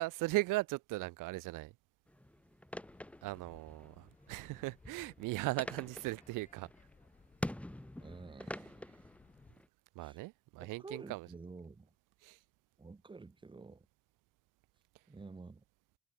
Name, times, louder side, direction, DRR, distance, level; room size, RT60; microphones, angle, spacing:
voice 1, 0.0-1.7 3.2-6.7 10.0-11.3 12.2-12.4, right 21 dB, 90° right, 0.7 m, -38 dB
sound 1, 2.1-9.7, left 1 dB, 5° left, 1.7 m, -47 dB
sound 2, 2.7-9.5, left 4 dB, 25° left, 7.1 m, -64 dB
voice 2, 8.0-8.8 10.0-10.2 10.6-11.9 12.8-13.9 15.1-15.6, right 4 dB, 15° right, 1.8 m, -51 dB
cardioid pair, 135°, 31 cm